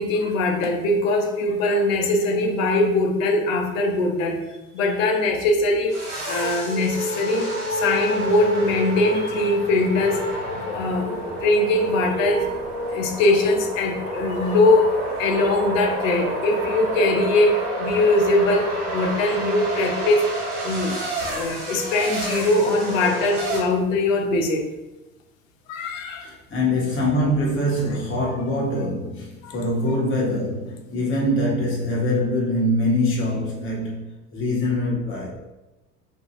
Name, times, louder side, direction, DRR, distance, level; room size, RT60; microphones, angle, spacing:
voice 1, 0.0-4.4 4.7-10.2 10.5-12.5 12.9-14.9 15.2-20.2 20.6-24.7 25.7-26.3 29.4-29.5, left 2 dB, 65° left, 0.6 m, -21 dB
sound 1, 5.9-23.6, right 1 dB, 30° right, 1.2 m, -29 dB
voice 2, 26.2-35.3, left 1 dB, 30° left, 0.9 m, -24 dB
2.5 x 2.0 x 3.0 m
figure-of-eight pair, 75°, 42 cm